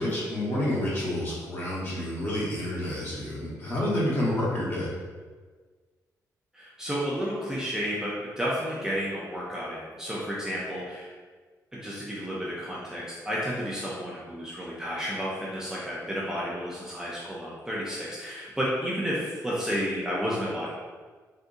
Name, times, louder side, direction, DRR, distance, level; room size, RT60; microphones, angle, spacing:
voice 1, 0.0-4.9, left 1 dB, 35° left, -7 dB, 1.2 m, -29 dB
voice 2, 6.5-11.1 11.7-20.7, equal, 10° right, -7 dB, 0.5 m, -31 dB
3.6 x 2.6 x 2.6 m, 1.4 s
cardioid pair, 115°, 7 cm